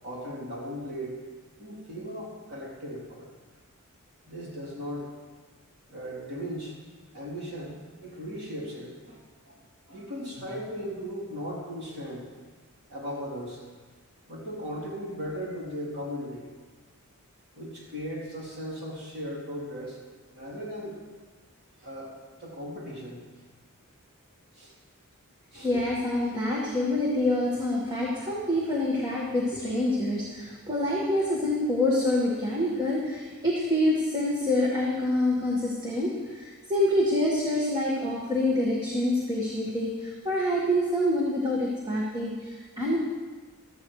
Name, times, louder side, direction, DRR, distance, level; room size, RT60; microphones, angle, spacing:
voice 1, 0.0-1.1 1.6-3.3 4.3-5.1 5.9-6.8 7.1-9.6 9.9-12.3 12.9-13.6 14.3-16.5 17.5-20.0 20.3-21.0 21.8-23.2 24.5-24.7 25.5-25.7, equal, 50° right, -4 dB, 3.2 m, -37 dB
voice 2, 25.6-43.0, left 1 dB, 20° right, -4 dB, 1.6 m, -26 dB
16.0 x 13.5 x 3.2 m, 1.4 s
head